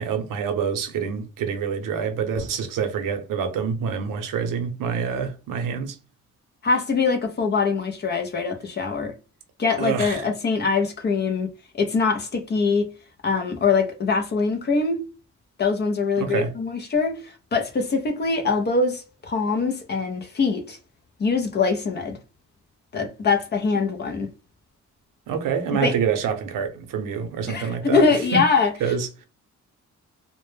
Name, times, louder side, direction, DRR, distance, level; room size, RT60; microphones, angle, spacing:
voice 1, 0.0-6.0 9.8-10.2 16.2-16.5 25.3-28.4 28.8-29.3, right 6 dB, 90° right, 0.6 m, -26 dB
voice 2, 6.6-9.1 9.6-11.5 11.7-12.9 13.2-15.0 15.6-20.8 21.2-22.2 22.9-24.3 25.8-26.0 27.5-28.7, left 4 dB, 35° left, 0.4 m, -23 dB
2.1 x 2.1 x 3.1 m
wide cardioid pair, 165°, 31 cm